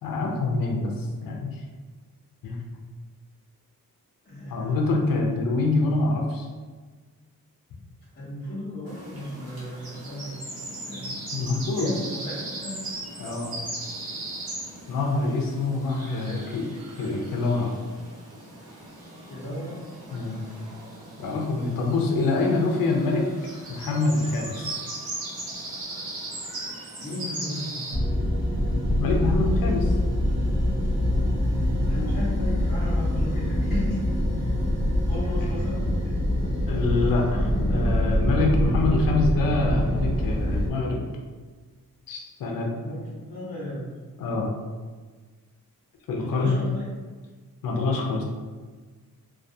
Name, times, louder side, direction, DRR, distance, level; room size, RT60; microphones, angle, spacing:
voice 1, 0.0-1.6 2.4-2.6 4.5-6.5 11.3-11.9 13.2-13.5 14.9-16.7 17.0-17.7 20.1-20.4 21.2-23.3 23.7-24.8 28.9-29.9 36.7-41.0 42.1-42.7 44.2-44.5 46.1-46.6 47.6-48.2, left 3 dB, 70° left, 0 dB, 0.5 m, -25 dB
voice 2, 4.2-5.1 8.1-10.4 10.8-11.1 11.7-12.8 16.2-16.6 17.0-17.2 19.3-19.8 27.0-27.9 31.4-34.1 34.3-34.5 35.1-35.9 42.8-43.8 46.2-46.8, left 1 dB, 30° left, -12 dB, 0.7 m, -35 dB
sound 1, 8.9-27.9, right 2 dB, 90° right, 1.0 m, -38 dB
sound 2, 27.9-40.7, left 1 dB, 50° right, 0.6 m, -24 dB
2.3 x 2.3 x 2.6 m, 1.4 s
wide cardioid pair, 165°, 35 cm